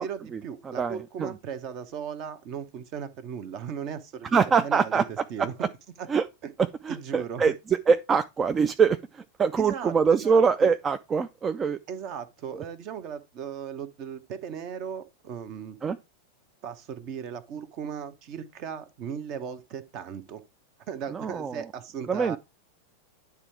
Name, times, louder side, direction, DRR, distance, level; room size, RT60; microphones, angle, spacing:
voice 1, 0.0-5.5 6.0-6.1 6.4-6.5 6.9-7.4 9.6-10.7 11.9-15.8 16.6-20.4 20.9-22.4, right 7 dB, 40° right, 0.9 m, -37 dB
voice 2, 0.8-1.3 4.3-5.1 6.1-6.2 6.6-7.5 7.9-11.8 15.8-16.0 21.1-21.5 22.1-22.4, right 5 dB, 20° right, 0.4 m, -23 dB
9.8 x 3.5 x 4.5 m
figure-of-eight pair, 90°, 0 cm